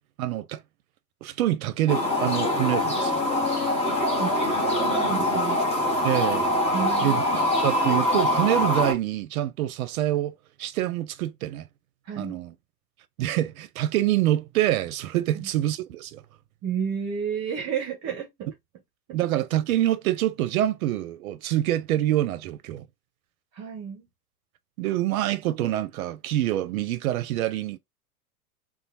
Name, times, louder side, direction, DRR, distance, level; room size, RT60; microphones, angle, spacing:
voice 1, 0.2-0.6 1.2-3.2 6.0-6.5 7.0-7.2 7.6-10.3 10.6-11.7 12.2-12.5 13.2-16.2 19.1-22.9 24.8-27.8, right 13 dB, 65° right, 0.6 m, -26 dB
sound 1, 1.9-8.9, left 1 dB, 15° left, 1.1 m, -24 dB
voice 2, 4.2-5.7 6.7-7.5 12.1-12.4 15.3-15.5 16.6-18.5 23.5-24.1, right 7 dB, 35° right, 0.9 m, -32 dB
3.1 x 2.3 x 2.6 m
hypercardioid pair, 100°, 47 cm